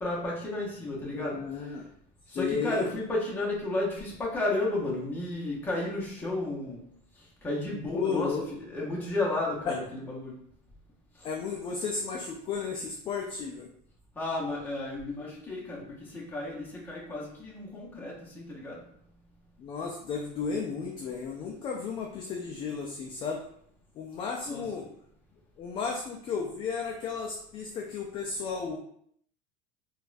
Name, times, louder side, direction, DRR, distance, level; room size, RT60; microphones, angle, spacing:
voice 1, 0.0-1.7 2.3-6.8 7.4-10.3 14.2-18.8 24.4-24.9, left 2 dB, 10° left, -5 dB, 0.9 m, -33 dB
voice 2, 1.1-1.8 2.3-2.9 7.9-8.5 9.7-9.8 11.2-13.7 19.6-23.4 23.9-24.8 25.6-28.8, left 5 dB, 30° left, 0 dB, 0.4 m, -33 dB
3.9 x 2.3 x 2.5 m, 0.67 s
cardioid pair, 150°, 19 cm